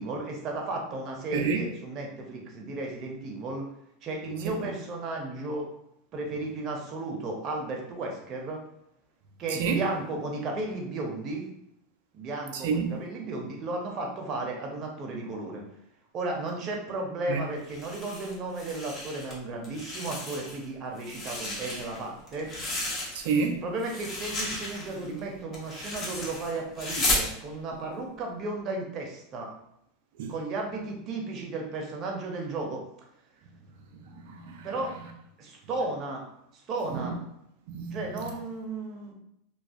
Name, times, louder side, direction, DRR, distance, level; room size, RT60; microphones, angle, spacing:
voice 1, 0.0-3.7 4.0-5.7 6.1-8.6 9.4-11.4 12.1-15.6 16.1-22.5 23.6-29.5 30.3-32.8 34.6-34.9 35.4-36.3 36.5-37.2 37.9-39.1, right 2 dB, 45° right, 1 dB, 0.7 m, -34 dB
voice 2, 1.3-1.6 4.5-4.6 9.6-9.8 12.5-13.0 17.3-17.4 23.2-23.6 30.2-30.3 34.2-34.7 36.9-37.1 37.7-38.2, right 5 dB, 70° right, 4 dB, 0.3 m, -29 dB
sound 1, 17.6-19.3 19.6-20.6 21.0-23.5 23.8-27.3, left 1 dB, 35° left, 0.8 m, -34 dB
2.5 x 2.3 x 2.3 m, 0.76 s
hypercardioid pair, 90°, 0 cm